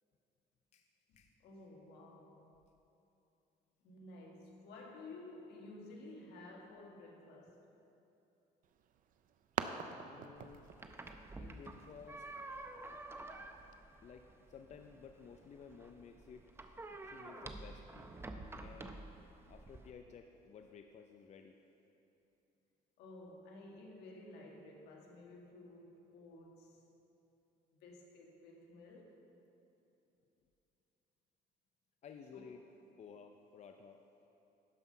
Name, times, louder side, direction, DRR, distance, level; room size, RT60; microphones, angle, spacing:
voice 1, 1.1-2.5 3.8-7.7 23.0-26.8 27.8-29.3 32.3-32.4, left 2 dB, 80° left, -1 dB, 1.7 m, -54 dB
sound 1, 8.6-13.8, right 8 dB, 55° right, 0.5 m, -47 dB
voice 2, 10.0-10.6 11.3-12.3 14.0-16.5 17.0-18.1 18.6-19.1 19.5-21.5 32.0-32.6 33.0-34.0, left 6 dB, 40° left, 5 dB, 0.5 m, -55 dB
sound 2, 10.4-19.9, right 2 dB, 15° right, 0.6 m, -50 dB
12.0 x 5.6 x 5.5 m, 2.9 s
cardioid pair, 110°, 17 cm